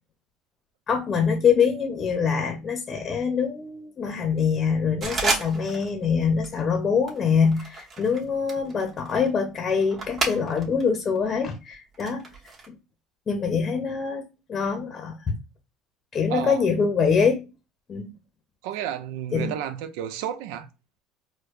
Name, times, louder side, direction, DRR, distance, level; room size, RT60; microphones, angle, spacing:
voice 1, 0.9-12.2 12.7-12.8 13.3-14.2 14.5-15.4 16.1-17.4 17.9-18.1 19.3-19.6, left 6 dB, 35° left, 0.7 m, -24 dB
sound 1, 5.0-5.9 6.2-6.6 7.1-10.8 11.2-12.7, right 4 dB, 35° right, 1.2 m, -32 dB
voice 2, 16.3-16.7 18.6-20.7, right 10 dB, 80° right, 0.4 m, -31 dB
4.4 x 2.2 x 2.4 m
supercardioid pair, 100°, 0 cm